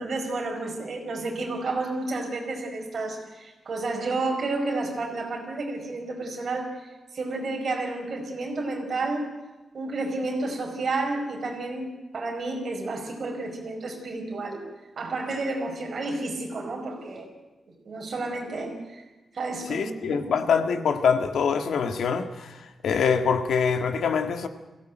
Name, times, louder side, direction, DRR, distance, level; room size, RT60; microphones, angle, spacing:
voice 1, 0.0-9.3 9.7-11.9 12.1-14.6 15.0-17.3 17.8-19.0 19.3-20.2, right 2 dB, 45° right, 4.9 m, -31 dB
voice 2, 19.7-24.5, left 6 dB, 85° left, 1.7 m, -24 dB
22.5 x 17.0 x 9.1 m
wide cardioid pair, 175°, 0 cm